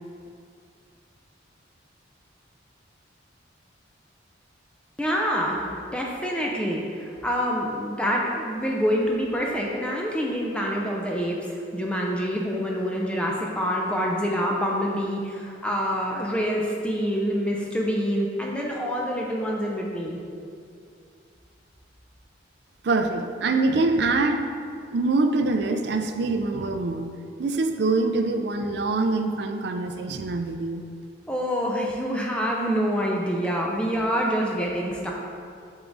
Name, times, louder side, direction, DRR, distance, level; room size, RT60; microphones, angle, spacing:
voice 1, 5.0-20.2 31.3-35.1, equal, 5° left, -2 dB, 0.5 m, -26 dB
voice 2, 22.8-24.4 24.9-27.1 27.4-30.9, right 3 dB, 55° right, 6 dB, 0.4 m, -24 dB
8.0 x 3.6 x 3.9 m, 2.4 s
head